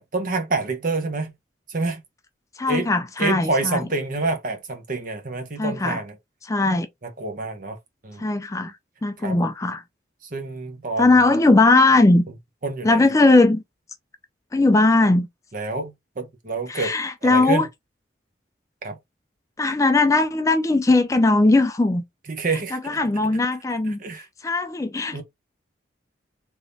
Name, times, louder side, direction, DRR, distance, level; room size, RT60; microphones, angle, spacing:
voice 1, 0.0-1.3 1.7-2.0 2.7-2.9 3.2-6.2 7.0-7.8 8.0-8.3 8.6-8.7 9.2-9.4 10.3-11.1 12.6-13.1 15.5-16.9 17.2-17.7 18.8-19.0 22.3-23.3 24.0-24.3 25.1-25.2, right 3 dB, 45° right, 0.9 m, -27 dB
voice 2, 2.6-3.8 5.6-6.0 6.5-6.9 8.2-8.7 9.0-9.8 11.0-12.3 12.8-13.6 14.5-15.3 16.7-17.7 19.6-22.0 22.7-24.0 24.4-25.2, left 2 dB, 15° left, 0.3 m, -19 dB
3.5 x 2.9 x 2.6 m
head